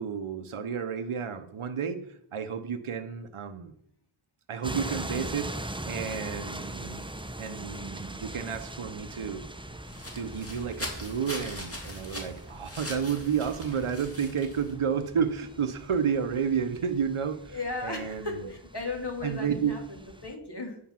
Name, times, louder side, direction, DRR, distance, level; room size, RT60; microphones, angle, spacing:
voice 1, 0.0-3.7 4.5-7.0 7.4-9.4 10.1-17.6 17.8-18.5 19.2-19.8, right 7 dB, 75° right, 8 dB, 0.8 m, -31 dB
sound 1, 4.6-20.4, right 1 dB, 10° right, 0.7 m, -41 dB
sound 2, 9.6-14.7, left 1 dB, 25° left, 2.3 m, -41 dB
voice 2, 17.5-20.8, left 3 dB, 50° left, 2 dB, 2.4 m, -36 dB
9.3 x 6.4 x 5.8 m, 0.74 s
wide cardioid pair, 50°, 50 cm